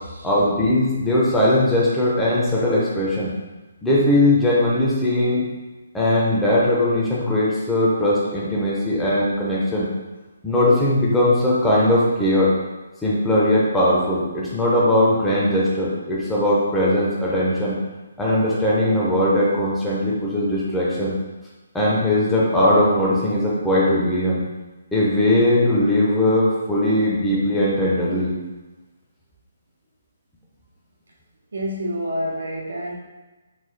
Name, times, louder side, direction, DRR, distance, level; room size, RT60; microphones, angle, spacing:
voice 1, 0.2-3.3 3.8-5.5 5.9-9.9 10.4-12.5 13.0-17.8 18.2-21.2 21.7-24.4 24.9-28.3, left 1 dB, 5° left, -7 dB, 0.5 m, -19 dB
voice 2, 31.5-33.0, equal, 85° right, -2 dB, 0.8 m, -27 dB
3.8 x 2.2 x 3.2 m, 1.2 s
hypercardioid pair, 170°, 0 cm